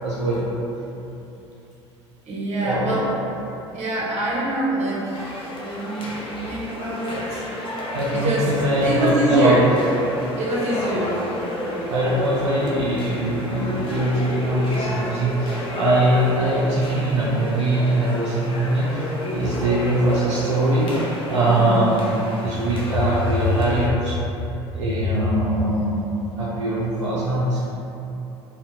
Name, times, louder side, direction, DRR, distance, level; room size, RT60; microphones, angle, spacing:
voice 1, 0.0-0.5 2.6-2.9 6.9-7.0 7.9-9.7 11.9-24.2 24.7-27.7, right 1 dB, 85° right, -8 dB, 0.5 m, -22 dB
voice 2, 2.3-3.1 3.7-7.4 8.1-9.6 10.3-11.2 15.6-15.8 21.4-21.8, right 1 dB, 50° right, -5 dB, 0.9 m, -25 dB
sound 1, 5.1-23.9, left 1 dB, 35° left, 0.6 m, -31 dB
2.7 x 2.2 x 3.5 m, 3.0 s
hypercardioid pair, 65°, 15 cm